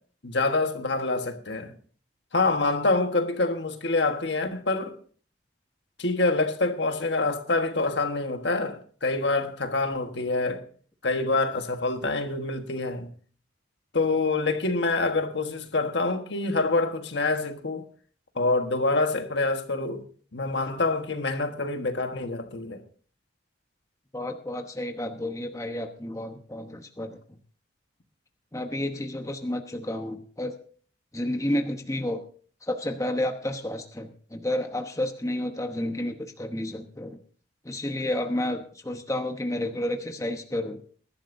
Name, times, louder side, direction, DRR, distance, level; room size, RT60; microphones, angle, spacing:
voice 1, 0.2-1.7 2.3-4.9 6.0-10.6 11.0-13.1 13.9-17.8 18.3-20.0 20.3-22.8, left 3 dB, 70° left, 1.4 m, -26 dB
voice 2, 24.1-27.2 28.5-30.6 31.1-32.2 32.6-37.2 37.6-40.8, left 1 dB, 15° left, 1.0 m, -31 dB
21.0 x 11.5 x 2.7 m
head